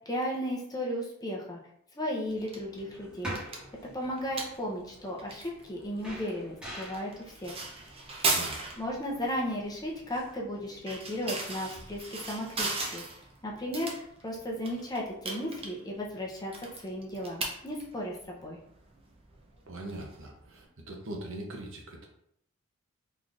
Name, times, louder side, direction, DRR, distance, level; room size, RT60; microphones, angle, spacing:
voice 1, 0.1-1.6 1.9-3.4 3.9-7.6 8.8-13.0 13.4-13.9 14.2-16.5 16.8-18.6, equal, 20° left, -2 dB, 0.7 m, -35 dB
sound 1, 2.3-20.6, right 3 dB, 25° right, 0.6 m, -39 dB
sound 2, 2.9-10.4, right 1 dB, 5° right, 1.3 m, -46 dB
voice 2, 8.2-8.6 19.7-22.1, right 1 dB, 65° right, 1 dB, 0.8 m, -41 dB
3.9 x 3.1 x 2.5 m, 0.69 s
head